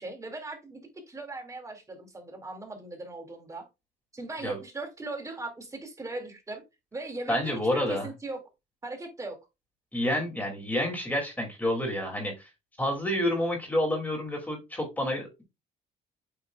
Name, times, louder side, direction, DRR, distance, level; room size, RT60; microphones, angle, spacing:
voice 1, 0.0-3.7 4.1-6.6 6.9-8.4 8.8-9.4, right 2 dB, 20° right, 4 dB, 2.2 m, -39 dB
voice 2, 7.3-8.1 9.9-12.5 12.8-15.4, left 1 dB, 10° left, 1 dB, 2.4 m, -29 dB
8.5 x 5.2 x 2.3 m, 0.24 s
cardioid pair, 110°, 17 cm